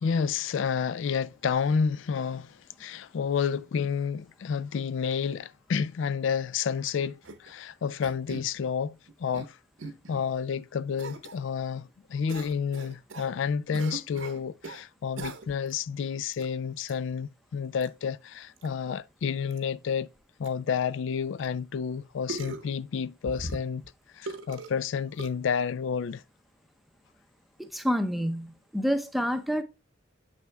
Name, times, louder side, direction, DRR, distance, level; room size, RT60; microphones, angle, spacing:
voice 1, 0.0-9.6 10.1-20.1 20.4-23.8 24.1-26.2, left 6 dB, 70° left, 0.3 m, -30 dB
sound 1, 7.2-7.5 8.0-8.5 9.1-9.5 9.8-10.2 11.0-11.4 12.3-13.3 13.7-14.8 15.2-15.7 16.3-16.5 16.8-16.9 17.8-17.9 18.6-18.7 18.9-19.0 19.5-19.6 20.2-20.3 20.4-20.5 21.4-21.5 22.3-22.7 23.2-23.9 24.3-24.7 25.2-25.3, right 3 dB, 80° right, 1.1 m, -39 dB
voice 2, 27.6-29.6, equal, ahead, 0.6 m, -28 dB
7.4 x 6.2 x 2.2 m
head